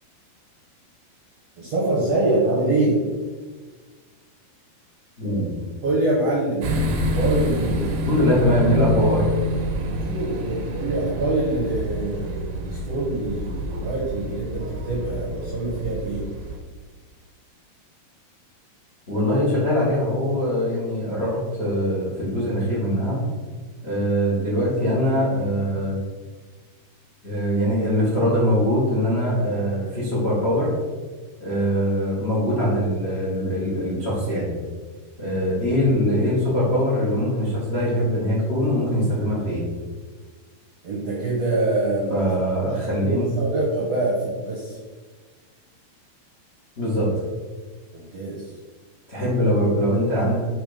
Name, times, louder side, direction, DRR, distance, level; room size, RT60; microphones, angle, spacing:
voice 1, 1.6-3.0 5.8-8.2 9.8-16.3 40.8-42.4 42.7-44.8 47.9-48.5, right 2 dB, 65° right, -5 dB, 1.6 m, -25 dB
voice 2, 5.2-5.5 8.1-9.3 19.1-23.2 23.8-26.0 27.2-30.7 31.4-34.5 35.2-39.6 42.1-43.3 46.8-47.1 49.1-50.4, equal, 70° left, -7 dB, 0.6 m, -22 dB
sound 1, 6.6-16.6, equal, 90° right, 3.0 m, -27 dB
7.2 x 3.5 x 5.2 m, 1.4 s
omnidirectional pair, 4.8 m